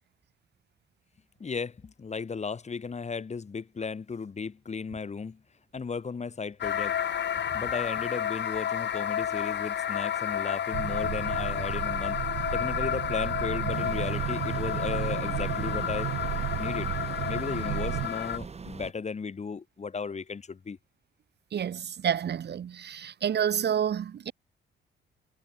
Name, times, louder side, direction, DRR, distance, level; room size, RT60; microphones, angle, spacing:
voice 1, 1.4-5.4 5.7-7.0 7.5-12.2 12.5-16.1 16.6-16.9 17.3-20.8, left 5 dB, 35° left, 3.7 m, -35 dB
sound 1, 6.6-18.4, left 9 dB, 60° left, 5.6 m, -31 dB
sound 2, 10.7-18.1, right 15 dB, 80° right, 0.9 m, -33 dB
sound 3, 13.7-18.9, right 5 dB, 30° right, 3.7 m, -43 dB
voice 2, 21.5-24.3, right 8 dB, 55° right, 3.6 m, -29 dB
cardioid pair, 90°, 20 cm